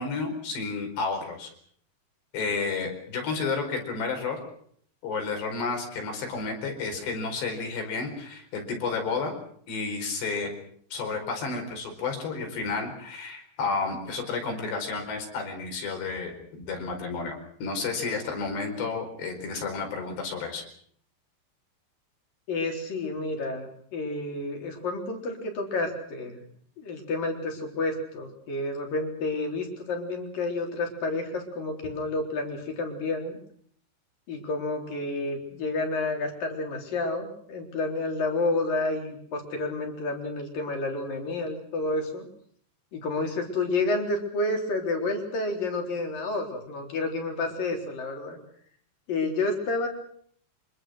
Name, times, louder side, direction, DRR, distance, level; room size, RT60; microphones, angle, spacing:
voice 1, 0.0-1.5 2.3-4.4 5.0-9.3 9.7-10.5 10.9-20.6, left 4 dB, 70° left, 4 dB, 6.9 m, -31 dB
voice 2, 22.5-26.5 26.8-33.4 34.3-42.3 42.9-48.4 49.1-49.9, left 2 dB, 50° left, 3 dB, 5.5 m, -30 dB
26.0 x 24.0 x 6.4 m, 0.62 s
omnidirectional pair, 5.1 m